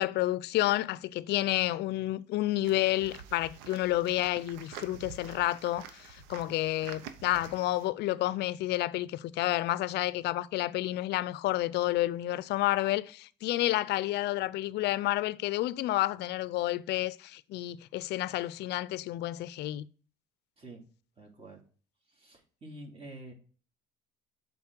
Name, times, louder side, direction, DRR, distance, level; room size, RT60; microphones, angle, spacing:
voice 1, 0.0-19.9, left 16 dB, 65° left, 0.5 m, -30 dB
sound 1, 2.6-7.9, right 8 dB, 90° right, 0.8 m, -48 dB
voice 2, 21.2-21.6 22.2-23.3, right 1 dB, 30° right, 2.8 m, -47 dB
7.3 x 4.1 x 4.4 m
supercardioid pair, 90°, 19 cm